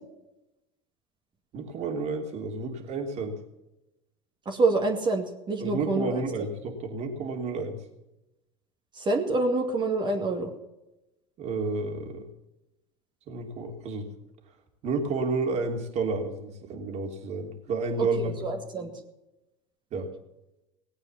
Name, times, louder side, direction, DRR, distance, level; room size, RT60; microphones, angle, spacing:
voice 1, 1.5-3.4 5.6-7.8 11.4-12.2 13.3-14.1 14.8-18.4 19.9-20.1, right 3 dB, 45° right, 3 dB, 3.2 m, -31 dB
voice 2, 4.5-6.2 8.9-10.5 18.0-18.9, right 3 dB, 30° right, 2 dB, 2.4 m, -27 dB
19.0 x 8.9 x 7.2 m, 0.93 s
hypercardioid pair, 85°, 15 cm